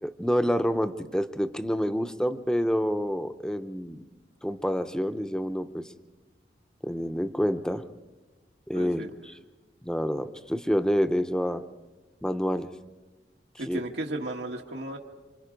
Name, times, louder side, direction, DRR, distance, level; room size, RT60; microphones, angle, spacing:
voice 1, 0.0-4.0 4.4-5.9 6.8-7.8 8.7-9.0 9.8-11.6 12.2-12.7 13.7-13.8, equal, 5° left, 10 dB, 0.7 m, -27 dB
voice 2, 8.7-9.1 13.6-15.0, right 1 dB, 85° right, 1 dB, 1.6 m, -34 dB
27.5 x 26.5 x 5.2 m, 1.2 s
head